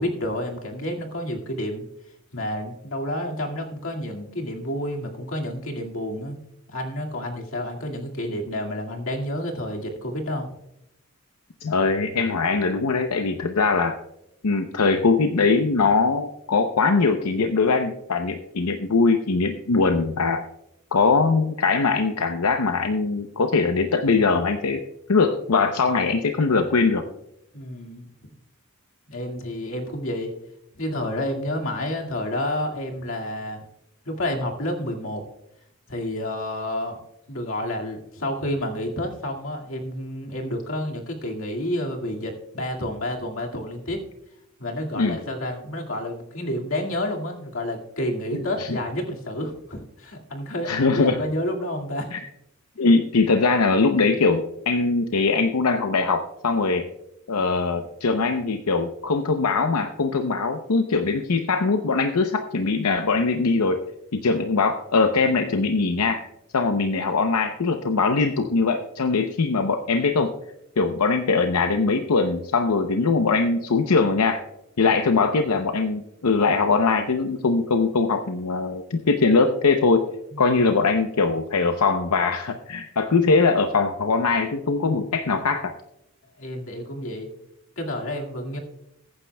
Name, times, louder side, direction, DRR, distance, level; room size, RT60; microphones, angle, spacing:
voice 1, 0.0-1.8 2.3-6.4 6.7-10.5 27.5-28.3 29.1-30.3 30.8-33.6 34.1-35.2 35.9-37.0 37.3-44.0 44.6-52.1 52.7-53.0 64.3-64.4 80.3-80.5 86.4-87.3 87.8-88.6, left 1 dB, 65° left, 0 dB, 2.1 m, -30 dB
voice 2, 11.6-14.0 14.4-20.4 20.9-24.8 25.1-27.0 45.0-45.2 48.6-48.8 50.6-51.2 52.1-52.2 52.8-56.9 57.3-63.8 64.1-66.2 66.5-70.3 70.8-74.4 74.8-80.1 80.4-85.7, left 4 dB, 90° left, 6 dB, 0.7 m, -21 dB
21.0 x 9.7 x 2.2 m, 0.84 s
head